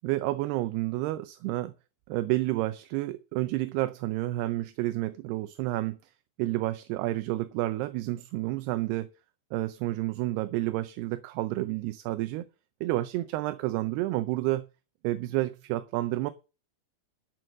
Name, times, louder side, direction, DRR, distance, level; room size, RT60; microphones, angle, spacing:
voice 1, 0.0-1.7 2.1-6.0 6.4-9.1 9.5-12.5 12.8-14.6 15.0-16.3, right 17 dB, 80° right, 2.7 m, -30 dB
13.0 x 6.2 x 6.4 m
omnidirectional pair, 4.8 m